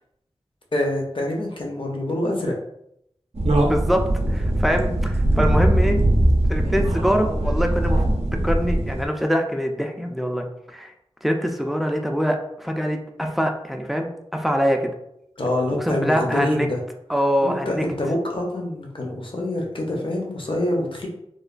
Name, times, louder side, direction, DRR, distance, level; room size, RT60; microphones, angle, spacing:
voice 1, 0.7-2.5 15.4-16.8 17.4-21.1, left 1 dB, 55° left, 0 dB, 0.6 m, -25 dB
sound 1, 3.3-9.1, right 1 dB, 75° right, 0.5 m, -21 dB
voice 2, 3.6-6.0 6.5-8.0 8.3-10.9 11.2-14.9 15.8-16.7 17.1-17.8, equal, ahead, 3 dB, 0.3 m, -24 dB
3.1 x 2.1 x 2.4 m, 0.77 s
wide cardioid pair, 65°, 11 cm